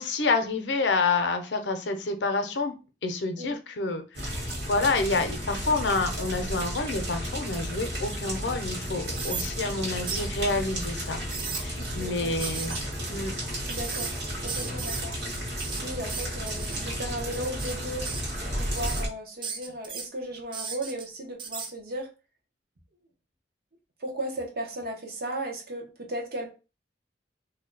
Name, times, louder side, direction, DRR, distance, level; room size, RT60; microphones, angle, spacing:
voice 1, 0.0-2.7 3.0-4.0 4.7-11.2 11.5-12.8 13.1-13.3, left 3 dB, 80° left, 7 dB, 0.6 m, -28 dB
sound 1, 4.1-19.1, equal, 85° right, 1.4 m, -33 dB
sound 2, 6.4-7.8 8.3-8.4 9.1-9.5 10.1-10.3 11.1-11.6 12.4-12.8 13.7-14.2 14.5-15.0 15.3-16.8 17.3-17.7 18.0-18.4 18.7-19.0 19.4-20.1 20.5-21.0 21.4-21.7, right 5 dB, 30° right, 0.4 m, -36 dB
voice 2, 9.6-10.0 11.6-12.3 13.6-15.2 15.8-18.1 18.4-22.1 24.0-26.5, right 1 dB, 60° right, 2 dB, 0.9 m, -36 dB
2.7 x 2.2 x 3.8 m, 0.32 s
head